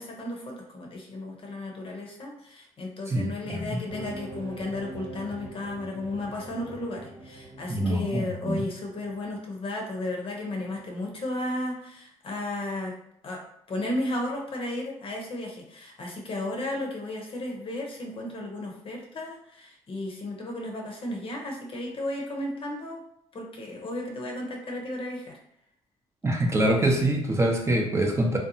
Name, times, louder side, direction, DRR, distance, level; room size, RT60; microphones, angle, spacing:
voice 1, 0.0-12.9 13.2-13.4 13.7-23.0 23.3-25.4, left 1 dB, 45° left, 0 dB, 0.7 m, -34 dB
voice 2, 3.1-3.8 7.7-8.6 26.2-28.4, right 1 dB, 20° right, 1 dB, 0.6 m, -25 dB
sound 1, 3.9-9.4, right 2 dB, 85° right, 1.2 m, -43 dB
2.6 x 2.2 x 2.6 m, 0.71 s
supercardioid pair, 75°, 13 cm